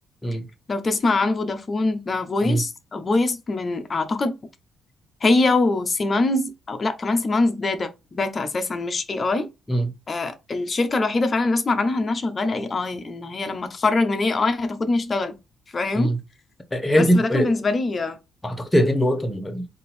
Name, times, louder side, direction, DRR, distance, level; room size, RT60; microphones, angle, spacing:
voice 1, 0.7-4.3 5.2-9.5 10.1-15.3 15.7-16.2 17.0-18.2, left 3 dB, 35° left, 0.9 m, -23 dB
voice 2, 16.7-17.5 18.4-19.7, equal, 15° left, 1.2 m, -21 dB
3.8 x 2.8 x 4.3 m
cardioid pair, 90°, 0 cm